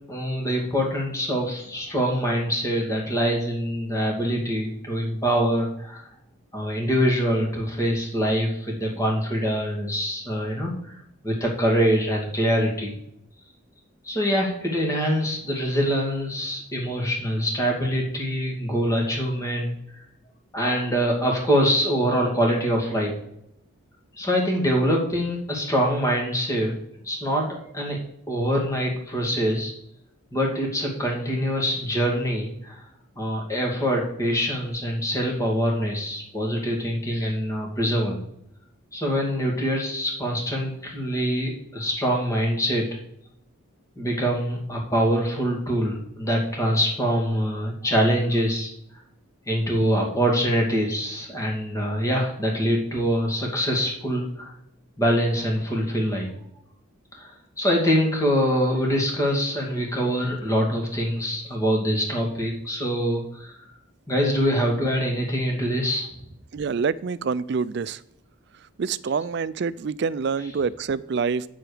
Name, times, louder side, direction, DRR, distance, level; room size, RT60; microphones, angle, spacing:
voice 1, 0.1-6.1 6.5-10.7 11.2-13.0 14.0-19.7 20.5-23.2 24.2-26.7 27.0-28.0 28.3-29.7 30.3-32.8 33.2-38.2 38.9-42.9 44.0-48.7 49.5-54.5 55.0-56.3 57.1-63.5 64.1-66.1, equal, 15° left, -1 dB, 2.1 m, -24 dB
voice 2, 66.5-68.0 68.8-71.5, right 5 dB, 50° right, 17 dB, 0.4 m, -26 dB
8.8 x 7.7 x 5.0 m, 0.77 s
head